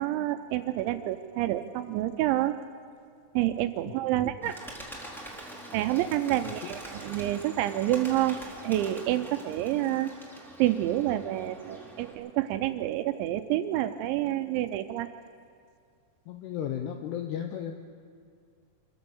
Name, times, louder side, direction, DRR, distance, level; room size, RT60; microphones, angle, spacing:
voice 1, 0.0-2.6 3.4-4.6 5.7-8.4 8.6-10.1 10.6-15.1, right 14 dB, 80° right, 9 dB, 2.8 m, -28 dB
voice 2, 3.9-4.5 6.5-6.6 16.3-17.8, left 9 dB, 80° left, 5 dB, 2.4 m, -35 dB
Bird, 4.4-12.1, right 1 dB, ahead, 1.1 m, -44 dB
26.0 x 14.0 x 7.1 m, 2.2 s
omnidirectional pair, 5.7 m